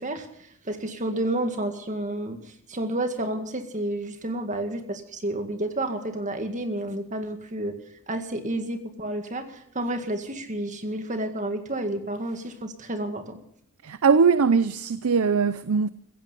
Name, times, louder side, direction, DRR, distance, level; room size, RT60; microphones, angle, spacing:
voice 1, 0.0-7.8 8.1-13.4, right 1 dB, 35° right, 1.9 m, -30 dB
voice 2, 13.8-15.9, right 5 dB, 75° right, 0.6 m, -21 dB
16.0 x 15.5 x 5.5 m
head